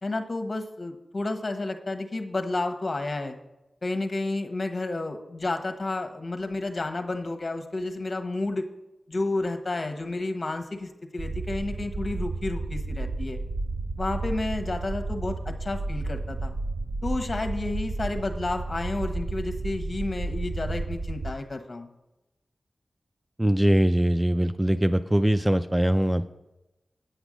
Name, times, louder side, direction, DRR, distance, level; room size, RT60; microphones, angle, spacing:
voice 1, 0.0-3.4 3.8-8.7 9.1-13.4 14.0-16.5 17.0-21.9, left 2 dB, 45° left, 6 dB, 1.1 m, -31 dB
sound 1, 11.2-21.3, right 3 dB, 65° right, 0.6 m, -32 dB
voice 2, 23.4-26.3, right 1 dB, 10° right, 9 dB, 0.3 m, -22 dB
9.2 x 8.1 x 5.1 m, 0.96 s
wide cardioid pair, 90°, 0 cm